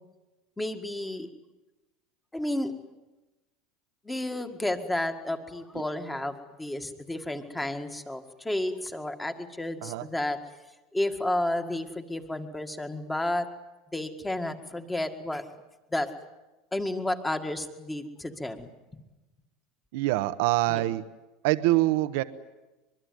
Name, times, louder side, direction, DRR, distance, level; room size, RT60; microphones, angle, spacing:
voice 1, 0.6-1.3 2.3-2.7 4.0-10.4 10.9-13.5 13.9-15.4 15.9-16.1 16.7-18.7 20.7-20.9, left 1 dB, 10° left, 6 dB, 1.9 m, -31 dB
voice 2, 19.9-21.0 21.4-22.2, right 18 dB, 75° right, 12 dB, 1.0 m, -24 dB
24.0 x 22.0 x 9.5 m, 1.1 s
supercardioid pair, 145°, 0 cm